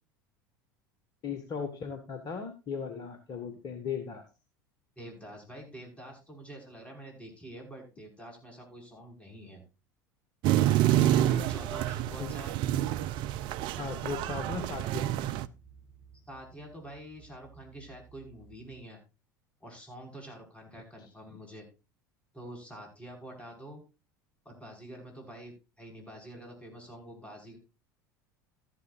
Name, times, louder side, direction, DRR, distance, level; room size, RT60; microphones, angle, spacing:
voice 1, 1.2-4.2 12.2-12.3 13.8-15.1 21.0-21.1, left 6 dB, 40° left, 7 dB, 1.7 m, -37 dB
voice 2, 5.0-9.6 11.0-12.6 16.3-19.0 19.6-21.7 22.3-23.8 24.5-27.6, right 1 dB, 10° left, 1 dB, 5.7 m, -46 dB
sound 1, 10.4-15.5, right 13 dB, 50° right, 0.5 m, -28 dB
sound 2, 11.7-18.8, right 5 dB, 10° right, 3.1 m, -55 dB
13.5 x 11.5 x 2.5 m, 0.29 s
figure-of-eight pair, 75°, 10 cm